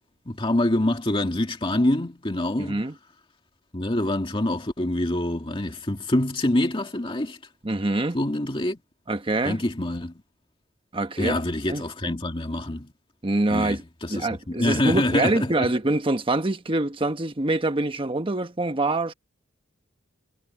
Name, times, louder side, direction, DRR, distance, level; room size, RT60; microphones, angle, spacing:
voice 1, 0.3-2.8 3.7-7.4 8.1-8.8 9.4-10.2 11.2-12.9 13.5-15.7, left 1 dB, 25° left, 2.2 m, -25 dB
voice 2, 2.6-2.9 7.6-8.2 9.1-9.6 10.9-11.4 11.7-11.8 13.2-13.8 14.1-19.1, right 2 dB, 25° right, 1.2 m, -25 dB
head